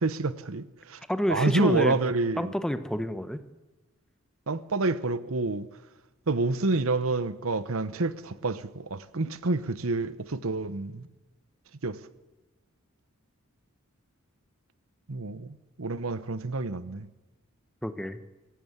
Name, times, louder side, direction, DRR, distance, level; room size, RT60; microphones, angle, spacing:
voice 1, 0.0-1.0 1.3-2.5 4.5-5.6 6.3-11.0 11.8-12.0 15.1-17.1, right 3 dB, 75° right, 1.0 m, -28 dB
voice 2, 1.1-2.0 2.4-3.4 17.8-18.2, equal, 5° left, 1.0 m, -28 dB
24.0 x 16.5 x 8.2 m
head